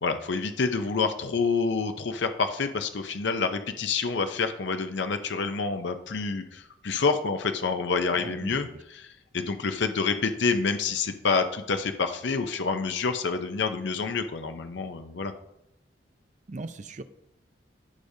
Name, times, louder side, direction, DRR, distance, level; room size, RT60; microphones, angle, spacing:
voice 1, 0.0-8.7 9.0-9.1 9.3-15.3, left 4 dB, 75° left, 7 dB, 0.6 m, -28 dB
voice 2, 8.1-8.8 16.5-17.0, right 3 dB, 40° right, 11 dB, 0.5 m, -39 dB
14.5 x 5.0 x 2.7 m, 0.81 s
head